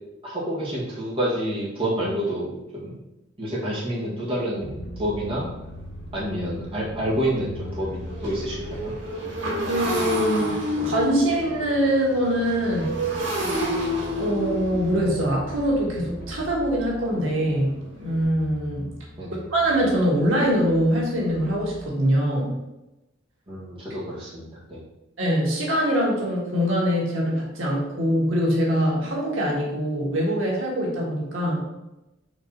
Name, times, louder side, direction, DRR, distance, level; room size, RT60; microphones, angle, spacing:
voice 1, 0.2-2.9 3.4-5.5 6.1-8.9 19.2-19.4 23.5-24.8, right 1 dB, 30° right, -7 dB, 1.9 m, -28 dB
sound 1, 4.6-21.9, left 1 dB, 55° left, 1.0 m, -41 dB
Motorcycle, 5.6-5.7 6.2-6.4 6.6-18.2, equal, 70° right, 2.5 m, -31 dB
voice 2, 9.7-10.6 10.9-13.0 14.1-18.9 19.5-22.6 25.2-31.6, equal, 90° right, -3 dB, 1.9 m, -23 dB
5.1 x 4.0 x 5.8 m, 0.95 s
head